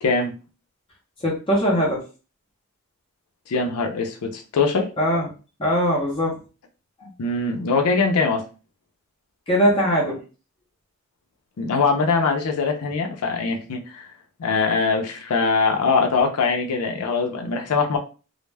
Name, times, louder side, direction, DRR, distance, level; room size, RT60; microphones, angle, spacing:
voice 1, 0.0-0.3 3.5-4.9 7.0-8.4 11.6-14.1 14.4-18.0, left 4 dB, 80° left, 3 dB, 0.5 m, -22 dB
voice 2, 1.2-2.0 5.0-5.3 5.6-6.4 9.5-10.2, equal, 25° left, -4 dB, 0.6 m, -20 dB
2.1 x 2.0 x 3.2 m, 0.34 s
head